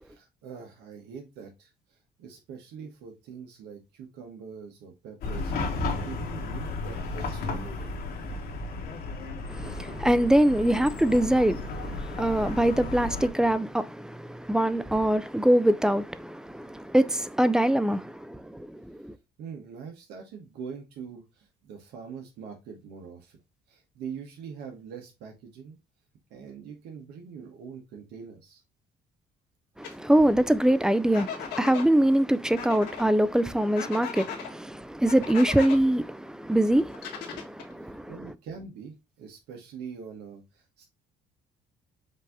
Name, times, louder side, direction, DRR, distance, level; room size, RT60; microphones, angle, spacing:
voice 1, 0.0-7.9 19.4-23.4 23.7-25.8 26.3-28.6 37.8-40.8, right 6 dB, 85° right, 1.1 m, -43 dB
Chatter / Car passing by / Traffic noise roadway noise, 5.2-13.3, left 3 dB, 65° left, 1.3 m, -34 dB
voice 2, 9.5-19.0 29.8-38.1, right 1 dB, 5° right, 0.3 m, -24 dB
sound 1, 29.8-29.9 31.1-31.9 32.6-33.0 33.7-34.5 35.1-35.8 36.9-37.7, left 7 dB, 85° left, 1.6 m, -37 dB
5.3 x 2.7 x 3.5 m
cardioid pair, 110°, 17 cm